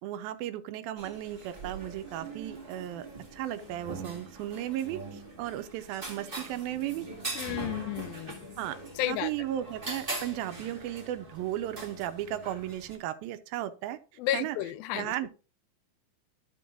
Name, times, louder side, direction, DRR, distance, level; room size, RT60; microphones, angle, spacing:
voice 1, 0.0-3.1 3.3-7.1 8.6-8.8 9.0-14.0 14.3-14.6 14.9-15.3, right 13 dB, 90° right, 2.5 m, -35 dB
sound 1, 1.0-13.0, right 3 dB, 25° right, 1.1 m, -42 dB
voice 2, 7.4-8.6 9.0-9.3 14.2-15.1, left 14 dB, 85° left, 2.4 m, -32 dB
13.0 x 5.4 x 2.4 m
omnidirectional pair, 4.2 m